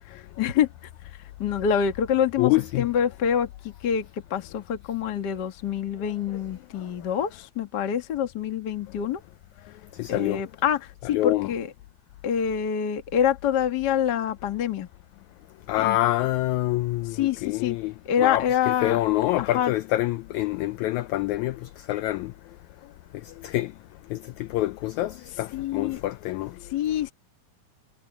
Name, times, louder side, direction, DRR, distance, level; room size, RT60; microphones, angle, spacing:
voice 1, 0.1-0.7 1.4-9.2 10.1-11.7 12.2-14.9 15.8-16.0 17.2-17.8 18.1-19.0 19.4-19.7 25.5-26.0 26.7-27.1, left 8 dB, 40° left, 1.6 m, -26 dB
voice 2, 2.4-2.9 10.0-10.4 11.0-11.5 15.7-22.3 23.3-23.7 24.1-26.5, left 16 dB, 85° left, 1.6 m, -26 dB
omnidirectional pair, 4.0 m